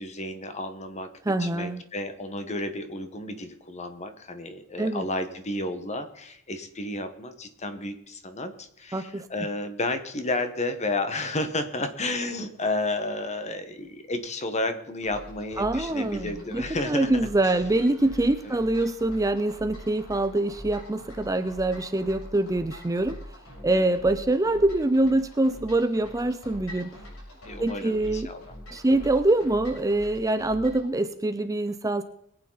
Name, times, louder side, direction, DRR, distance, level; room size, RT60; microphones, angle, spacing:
voice 1, 0.0-1.1 1.4-17.5 18.4-18.6 23.7-24.0 27.4-28.4 28.7-28.8, left 2 dB, 30° left, 9 dB, 1.3 m, -32 dB
voice 2, 1.3-1.8 4.8-5.0 8.9-9.3 15.6-23.2 23.6-26.9 27.6-28.3 28.7-32.0, right 2 dB, 15° right, 10 dB, 0.5 m, -24 dB
sound 1, 15.0-30.9, equal, 80° left, 6.6 m, -44 dB
22.5 x 8.8 x 4.0 m, 0.73 s
head